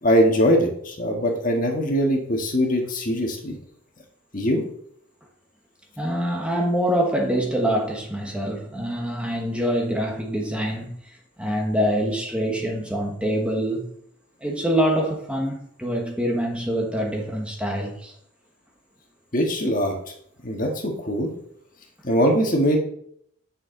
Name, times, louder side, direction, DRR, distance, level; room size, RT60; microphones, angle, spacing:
voice 1, 0.0-3.6 4.3-4.6 19.3-19.9 20.4-21.3 22.0-22.8, equal, 40° left, 2 dB, 1.7 m, -21 dB
voice 2, 6.0-11.0 11.4-13.9 14.4-18.1, equal, 5° right, 0 dB, 1.2 m, -25 dB
9.9 x 6.5 x 3.9 m, 0.67 s
head